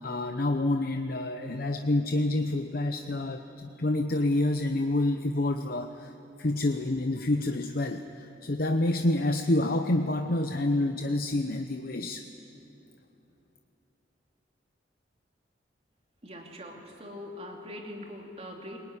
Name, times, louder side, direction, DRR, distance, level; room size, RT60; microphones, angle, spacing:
voice 1, 0.0-6.1 6.4-12.2, left 1 dB, 55° left, 6 dB, 0.9 m, -28 dB
voice 2, 16.2-18.8, left 1 dB, 35° right, 1 dB, 3.1 m, -42 dB
23.0 x 20.5 x 10.0 m, 2.9 s
head